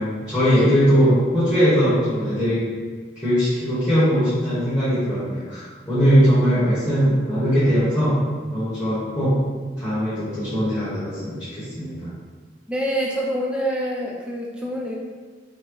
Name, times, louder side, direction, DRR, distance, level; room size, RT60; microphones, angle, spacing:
voice 1, 0.0-2.7 3.1-8.2 8.5-9.3 9.8-12.1, equal, 15° left, -13 dB, 1.2 m, -20 dB
voice 2, 12.7-15.0, equal, 5° right, -3 dB, 0.5 m, -26 dB
5.6 x 2.2 x 3.1 m, 1.5 s
head